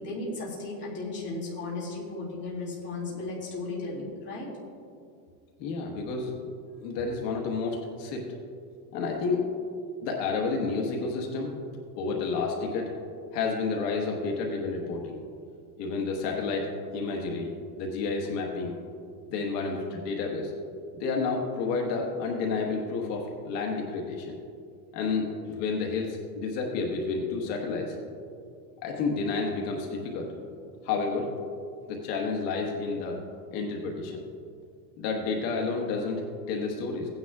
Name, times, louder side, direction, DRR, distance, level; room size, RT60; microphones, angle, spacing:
voice 1, 0.0-4.5, left 2 dB, 20° left, -6 dB, 2.3 m, -35 dB
voice 2, 5.6-6.3 6.8-8.3 8.9-9.5 10.0-11.6 12.0-12.9 13.3-15.2 15.8-18.8 19.3-20.5 21.0-24.4 24.9-28.0 28.8-30.3 30.8-31.3 31.9-33.2 33.5-34.2 35.0-37.1, left 4 dB, 70° left, 0 dB, 1.5 m, -30 dB
16.5 x 9.5 x 2.4 m, 2.3 s
supercardioid pair, 160°, 49 cm